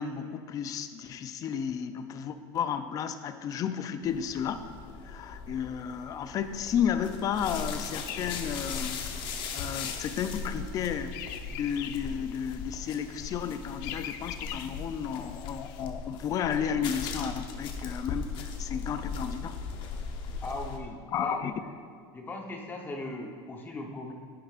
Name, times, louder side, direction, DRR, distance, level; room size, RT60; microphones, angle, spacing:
voice 1, 0.0-4.7 5.0-9.0 9.5-11.2 11.5-19.6 21.1-21.5, left 8 dB, 35° left, 10 dB, 0.4 m, -32 dB
sound 1, 4.0-20.8, left 5 dB, 50° left, 0.8 m, -39 dB
sound 2, 7.9-15.8, left 10 dB, 85° left, 0.5 m, -45 dB
voice 2, 20.4-21.4 22.1-24.1, left 2 dB, 20° left, 1 dB, 0.9 m, -38 dB
10.5 x 9.8 x 2.5 m, 2.2 s
cardioid pair, 160°, 11 cm